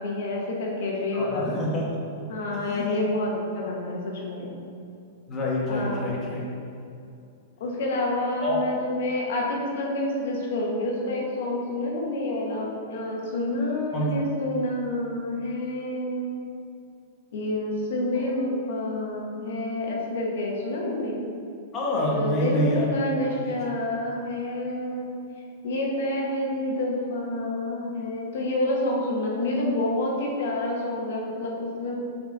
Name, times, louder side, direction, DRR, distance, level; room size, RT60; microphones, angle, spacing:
voice 1, 0.0-1.6 2.3-4.5 5.7-6.1 7.6-16.4 17.3-21.2 22.1-25.2 25.6-31.9, left 1 dB, 70° left, -2 dB, 1.2 m, -28 dB
voice 2, 1.1-1.9 2.5-3.0 5.3-6.5 8.4-8.6 13.9-14.1 21.7-22.9 23.4-23.5, equal, 25° left, -4 dB, 1.2 m, -27 dB
5.7 x 4.3 x 4.0 m, 2.6 s
hypercardioid pair, 140°, 0 cm